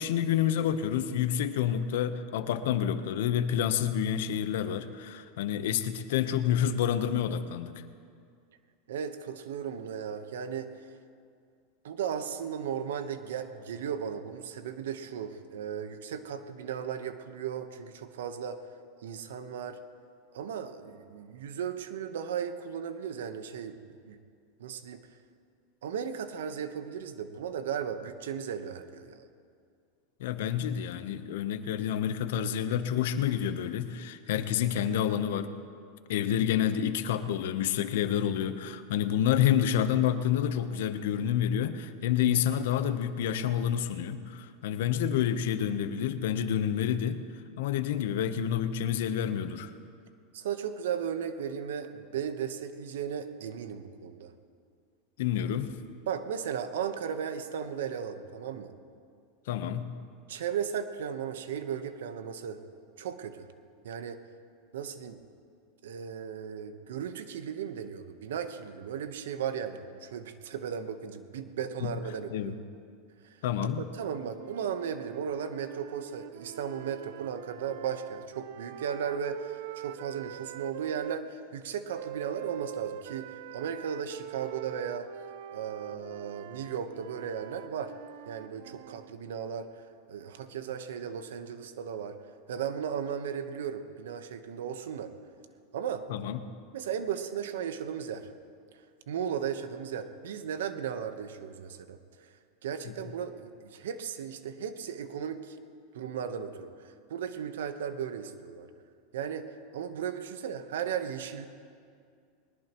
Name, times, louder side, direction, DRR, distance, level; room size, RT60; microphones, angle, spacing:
voice 1, 0.0-7.7 30.2-35.5 36.1-47.2 47.6-49.7 55.2-55.8 59.5-60.0 71.8-71.9 72.3-72.5 73.4-73.8 96.1-96.4 102.9-103.0, left 9 dB, 75° left, 10 dB, 0.9 m, -28 dB
voice 2, 8.9-10.7 11.8-18.6 19.0-19.8 20.3-24.2 24.6-25.0 25.8-29.2 50.3-54.3 56.1-58.7 60.3-62.6 63.0-63.5 63.8-64.2 64.7-65.2 65.8-72.5 73.2-73.4 73.6-85.1 85.5-87.9 88.3-89.8 90.1-92.2 92.5-95.1 95.7-96.1 96.7-98.3 99.1-102.3 102.6-105.6 105.9-108.7 109.1-111.5, right 8 dB, 85° right, 9 dB, 1.1 m, -36 dB
sound 1, 74.3-81.2 81.9-89.1, right 12 dB, 65° right, 0.4 m, -44 dB
21.0 x 19.5 x 3.1 m, 2.2 s
supercardioid pair, 130°, 0 cm